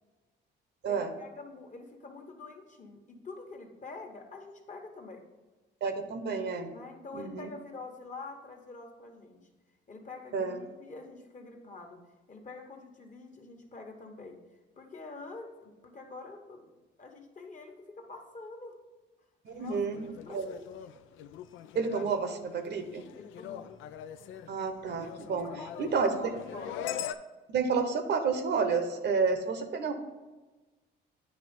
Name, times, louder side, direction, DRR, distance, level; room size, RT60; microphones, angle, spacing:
voice 1, 0.8-5.2 6.7-9.4 9.9-12.0 12.3-14.4 14.8-16.7 17.0-18.7 19.5-20.7 23.2-23.7 24.3-24.6 25.3-26.9, left 3 dB, 40° left, 3 dB, 1.2 m, -46 dB
voice 2, 5.8-6.7 7.1-7.5 10.3-10.6 19.4-20.5 21.7-23.0 24.5-25.5 25.8-26.1 27.5-29.9, right 5 dB, 60° right, 7 dB, 0.9 m, -30 dB
sound 1, 19.6-27.1, left 10 dB, 85° left, 0.4 m, -42 dB
9.2 x 3.1 x 5.2 m, 1.2 s
cardioid pair, 90°, 20 cm